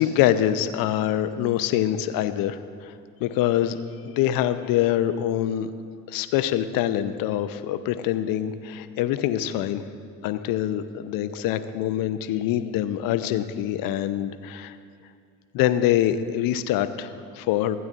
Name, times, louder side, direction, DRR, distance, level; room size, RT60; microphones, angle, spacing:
voice 1, 0.0-2.9 3.2-5.7 6.1-9.8 10.2-14.8 15.5-17.8, left 11 dB, 55° left, 12 dB, 0.6 m, -25 dB
15.5 x 9.3 x 2.5 m, 2.2 s
hypercardioid pair, 60°, 41 cm